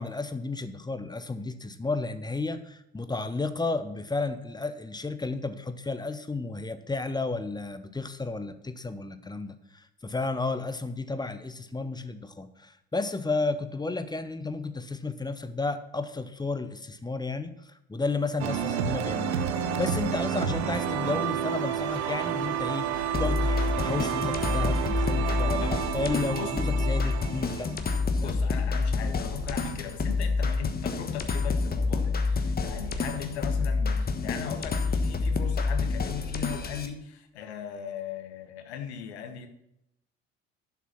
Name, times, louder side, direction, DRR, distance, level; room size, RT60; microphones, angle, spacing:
voice 1, 0.0-25.6 25.9-27.8 28.1-28.4, left 3 dB, 10° left, 11 dB, 0.9 m, -32 dB
sound 1, 18.4-28.2, right 8 dB, 75° right, 0.8 m, -30 dB
sound 2, 23.1-36.9, left 4 dB, 30° left, 1.3 m, -28 dB
voice 2, 28.2-39.5, left 8 dB, 80° left, 7 dB, 1.2 m, -38 dB
11.0 x 5.9 x 6.0 m, 0.82 s
figure-of-eight pair, 55°, 33 cm